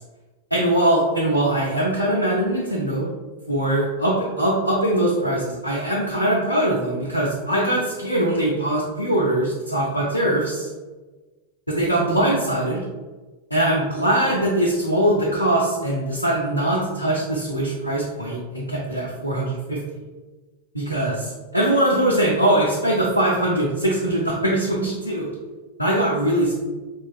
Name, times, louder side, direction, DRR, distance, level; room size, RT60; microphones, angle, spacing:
voice 1, 0.5-3.1 3.5-10.7 11.7-12.8 13.5-19.8 20.7-25.3 25.8-26.5, right 1 dB, 85° left, -4 dB, 0.5 m, -22 dB
3.0 x 2.8 x 2.2 m, 1.2 s
figure-of-eight pair, 90°, 0 cm